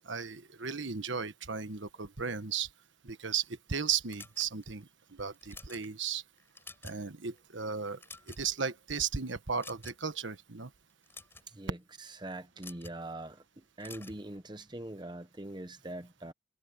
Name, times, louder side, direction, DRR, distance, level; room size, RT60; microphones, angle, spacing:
voice 1, 0.1-2.7 3.0-3.4 3.7-4.8 5.2-6.2 6.8-8.0 8.4-10.7, right 6 dB, 65° right, 1.3 m, -35 dB
sound 1, 4.1-4.8 5.3-5.9 6.4-7.1 7.4-7.5 7.9-8.6 9.6-10.1 10.9-11.5 12.6-13.0 13.8-14.2, left 3 dB, 10° left, 7.1 m, -49 dB
voice 2, 11.5-16.3, right 1 dB, 20° right, 0.8 m, -43 dB
head